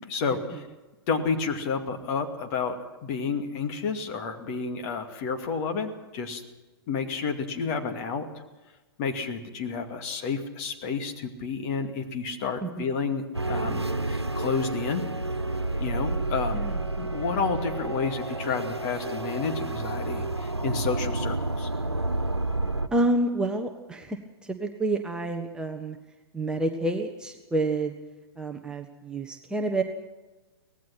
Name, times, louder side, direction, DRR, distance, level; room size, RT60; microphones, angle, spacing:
voice 1, 0.1-0.7 1.1-2.7 3.0-6.4 6.9-8.3 9.0-15.0 15.8-16.6 17.0-21.7, left 5 dB, 35° left, 5 dB, 2.4 m, -30 dB
voice 2, 12.6-12.9 16.5-16.8 22.9-26.0 26.3-28.0 28.4-29.8, right 2 dB, 5° right, 3 dB, 1.1 m, -28 dB
sound 1, 13.3-22.9, right 2 dB, 85° right, 1.3 m, -30 dB
24.5 x 18.5 x 6.1 m, 1.1 s
figure-of-eight pair, 115°, 13 cm